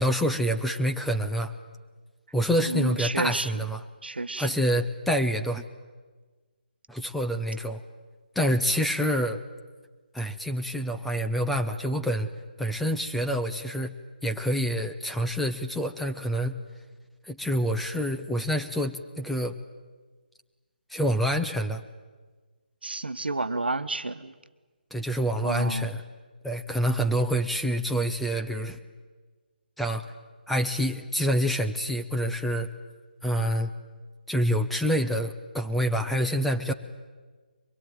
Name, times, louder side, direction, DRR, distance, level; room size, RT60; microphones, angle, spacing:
voice 1, 0.0-1.5 2.3-3.8 4.4-5.6 6.9-7.8 8.4-9.4 10.1-12.3 12.6-13.9 14.2-16.5 17.2-19.5 20.9-21.8 24.9-26.0 26.4-28.8 29.8-30.1 30.5-32.7 33.2-33.7 34.3-36.7, equal, ahead, 5 dB, 0.7 m, -27 dB
voice 2, 2.6-3.5 4.0-4.6 22.8-24.3 25.4-25.9, right 3 dB, 85° right, 11 dB, 1.3 m, -30 dB
23.5 x 21.0 x 9.4 m, 1.4 s
figure-of-eight pair, 155°, 5 cm